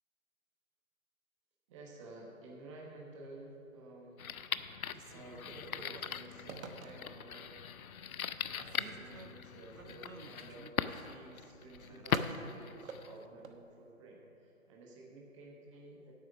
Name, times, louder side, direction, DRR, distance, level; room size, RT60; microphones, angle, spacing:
voice 1, 1.7-4.3 4.6-7.7 8.5-16.1, right 2 dB, 20° right, -2 dB, 1.2 m, -53 dB
sound 1, 4.2-13.2, left 8 dB, 85° left, 0.6 m, -40 dB
Telephone, 4.9-7.3 7.8-8.3 8.6-13.6, right 4 dB, 70° right, 1.1 m, -50 dB
8.9 x 8.3 x 6.0 m, 2.9 s
hypercardioid pair, 150°, 41 cm